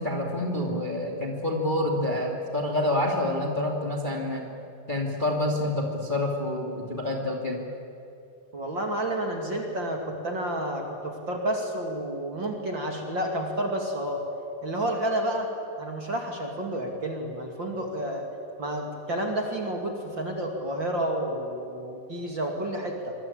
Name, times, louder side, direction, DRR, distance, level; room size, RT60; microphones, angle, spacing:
voice 1, 0.0-4.5 4.9-7.6, left 1 dB, 15° left, 1 dB, 2.3 m, -27 dB
voice 2, 8.5-14.2 14.6-15.5 15.8-18.3 18.6-23.1, right 1 dB, 35° right, 2 dB, 2.8 m, -30 dB
25.5 x 24.5 x 8.9 m, 2.7 s
omnidirectional pair, 4.0 m